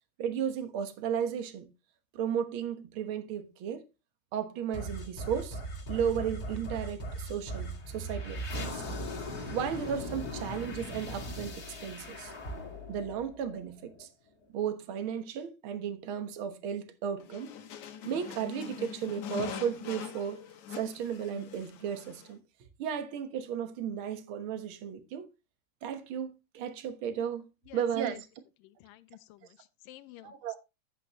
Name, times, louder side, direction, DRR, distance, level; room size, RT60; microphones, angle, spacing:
voice 1, 0.2-1.7 2.1-3.8 4.3-5.6 5.9-8.8 9.5-12.3 12.9-14.1 14.5-17.5 18.0-20.4 20.7-22.4 22.8-25.3 25.8-27.5 27.7-28.2 30.2-30.6, right 8 dB, 60° right, 1.4 m, -34 dB
sound 1, 4.7-14.1, equal, 35° left, 2.2 m, -39 dB
sound 2, 17.2-22.3, left 8 dB, 65° left, 2.4 m, -43 dB
voice 2, 27.7-28.2 28.6-30.6, left 14 dB, 90° left, 2.4 m, -51 dB
11.0 x 8.5 x 3.1 m
omnidirectional pair, 3.9 m